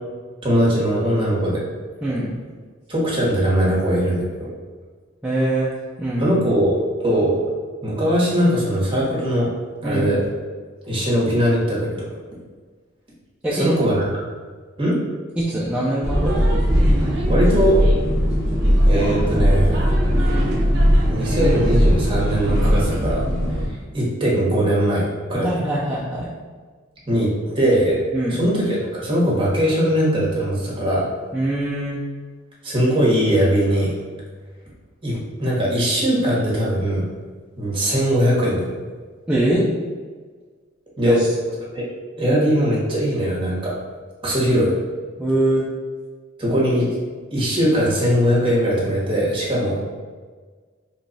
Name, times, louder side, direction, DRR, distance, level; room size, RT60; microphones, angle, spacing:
voice 1, 0.4-1.6 2.9-4.2 6.2-7.4 7.8-9.5 9.8-10.2 10.9-12.1 13.5-14.1 14.8-15.0 17.3-17.8 18.9-19.9 21.1-23.2 23.7-25.5 27.1-28.0 28.3-31.1 32.6-33.9 35.0-37.1 37.6-38.7 41.0-41.2 41.7-41.8 42.2-43.7 44.2-44.7 46.4-46.9 47.3-49.8, equal, 25° right, -6 dB, 1.0 m, -20 dB
voice 2, 2.0-2.4 5.2-5.7 6.0-6.4 9.8-10.1 13.4-13.7 15.4-16.4 25.4-26.3 28.1-28.4 31.3-32.0 39.3-39.6 41.0-41.3 45.2-45.6, right 1 dB, 5° right, -9 dB, 0.4 m, -22 dB
sound 1, 16.0-23.7, equal, 60° right, 0.7 m, -18 dB
3.0 x 2.3 x 3.9 m, 1.5 s
head